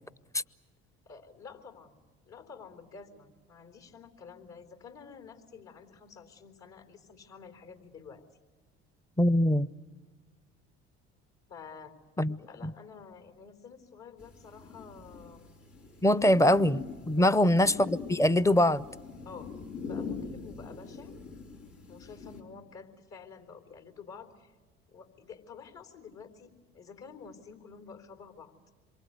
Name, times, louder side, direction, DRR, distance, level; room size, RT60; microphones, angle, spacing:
voice 1, 1.1-8.2 11.5-12.0 12.4-15.5 17.2-17.4 19.2-19.5 19.8-21.1 21.9-24.5 24.9-28.5, left 5 dB, 60° left, 4.0 m, -49 dB
voice 2, 9.2-9.7 12.2-12.4 12.6-12.7 16.0-18.8, left 1 dB, 10° left, 0.7 m, -23 dB
sound 1, 14.2-22.4, left 5 dB, 75° left, 3.9 m, -43 dB
27.0 x 23.5 x 8.2 m
hypercardioid pair, 65°, 31 cm